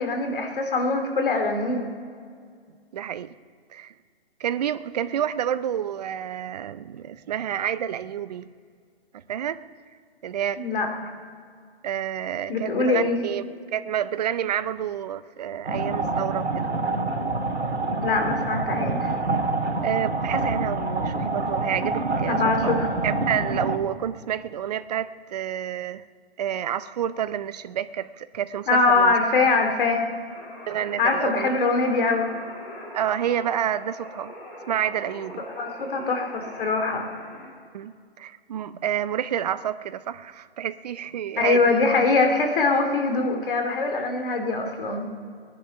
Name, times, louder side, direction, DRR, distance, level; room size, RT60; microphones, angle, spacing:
voice 1, 0.0-1.9 10.6-10.9 12.5-13.2 18.0-19.1 22.3-22.9 28.7-30.0 31.0-32.3 35.6-37.1 41.4-45.1, left 3 dB, 55° left, 4 dB, 2.6 m, -23 dB
voice 2, 2.9-3.3 3.7-3.9 4.4-8.5 9.1-9.6 10.2-10.6 11.8-16.7 19.8-22.7 23.0-26.0 26.4-29.1 30.7-31.6 32.9-34.3 34.7-35.4 37.7-41.9, right 10 dB, 40° right, 14 dB, 0.5 m, -29 dB
sound 1, 15.6-23.8, right 3 dB, 85° right, 2.4 m, -26 dB
sound 2, 30.3-37.5, left 1 dB, 25° left, 3.3 m, -42 dB
19.0 x 11.0 x 5.8 m, 2.1 s
hypercardioid pair, 150°, 32 cm